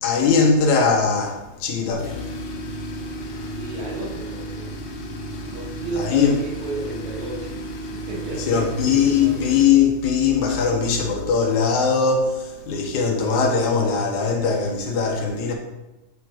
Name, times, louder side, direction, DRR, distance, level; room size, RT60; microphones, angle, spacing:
voice 1, 0.0-2.2 6.0-6.3 8.5-15.5, left 5 dB, 80° left, 2.5 m, -20 dB
Tools, 1.9-11.4, equal, 60° left, 1.9 m, -34 dB
voice 2, 3.5-4.7 5.5-9.5, right 3 dB, 75° right, 2.9 m, -33 dB
9.4 x 3.6 x 5.0 m
omnidirectional pair, 3.3 m